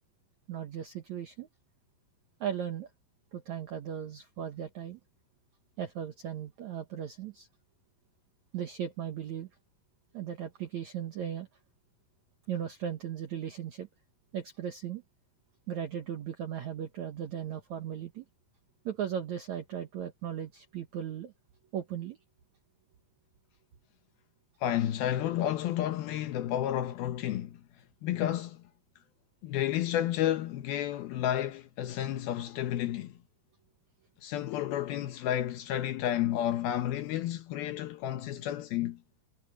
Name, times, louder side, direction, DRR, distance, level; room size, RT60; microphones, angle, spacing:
voice 1, 0.5-1.5 2.4-2.9 3.3-5.0 5.8-7.5 8.5-9.5 10.1-11.5 12.5-13.9 14.3-15.0 15.7-18.3 18.9-21.3 21.7-22.2, right 9 dB, 70° right, 1.7 m, -37 dB
voice 2, 24.6-27.6 28.0-28.6 29.4-33.1 34.2-39.0, left 12 dB, 70° left, 2.5 m, -31 dB
omnidirectional pair, 5.1 m